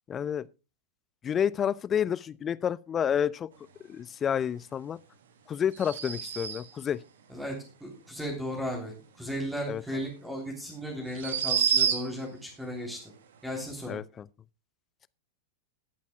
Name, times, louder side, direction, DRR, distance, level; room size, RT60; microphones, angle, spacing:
voice 1, 0.1-0.4 1.2-3.5 3.9-5.0 5.5-7.0 9.7-9.8 13.9-14.3, left 8 dB, 25° left, 0.5 m, -29 dB
sound 1, 5.7-6.8 9.9-10.0 11.1-12.3, right 7 dB, 60° right, 1.4 m, -28 dB
voice 2, 7.8-13.1 13.4-14.0, equal, 5° right, 3.3 m, -35 dB
21.0 x 8.4 x 2.3 m
figure-of-eight pair, 90°, 0 cm